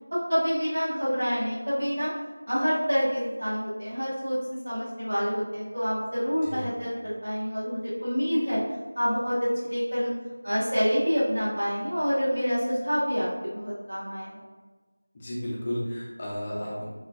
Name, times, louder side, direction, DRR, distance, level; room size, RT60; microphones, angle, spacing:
voice 1, 0.1-2.1 2.5-8.6 9.0-10.1 10.4-14.4, equal, 65° right, -10 dB, 1.3 m, -27 dB
voice 2, 15.1-16.9, equal, 20° left, -6 dB, 0.3 m, -33 dB
3.1 x 2.1 x 2.2 m, 1.3 s
figure-of-eight pair, 170°, 0 cm